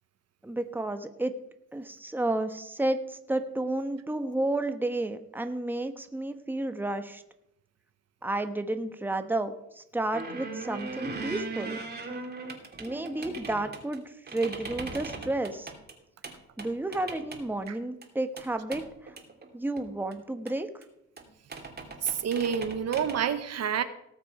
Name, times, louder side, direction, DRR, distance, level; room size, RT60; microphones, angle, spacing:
voice 1, 0.4-1.3 1.7-7.2 8.2-11.8 12.8-14.0 14.3-15.7 16.6-18.8 19.5-20.7, right 2 dB, 5° right, 8 dB, 1.2 m, -31 dB
sound 1, 10.1-14.0 14.3-15.9 16.2-16.3 16.6-17.7 18.0-18.1 18.4-18.5 18.7-19.5 19.8-19.9 20.1-20.2 20.5-20.6 20.8-20.9 21.2-21.3 21.5-23.2, right 3 dB, 30° right, 2.6 m, -39 dB
voice 2, 22.0-23.8, right 8 dB, 55° right, 11 dB, 1.0 m, -28 dB
18.0 x 6.8 x 4.9 m, 0.80 s
cardioid pair, 90°, 30 cm